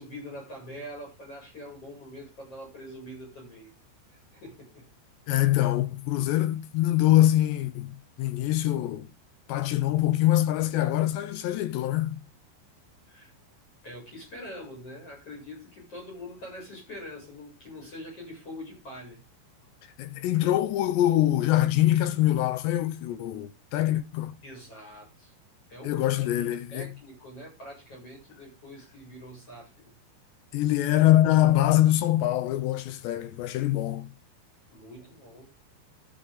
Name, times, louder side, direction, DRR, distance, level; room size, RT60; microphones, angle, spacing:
voice 1, 0.0-3.8 4.1-4.9 13.1-13.3 13.8-19.2 24.4-25.3 25.7-26.3 26.7-29.9 34.7-35.4, left 1 dB, 30° left, 8.3 m, -44 dB
voice 2, 5.3-9.1 9.5-12.2 20.0-24.4 25.8-26.9 30.5-34.1, left 14 dB, 75° left, 3.0 m, -24 dB
13.5 x 9.9 x 3.7 m
omnidirectional pair, 5.4 m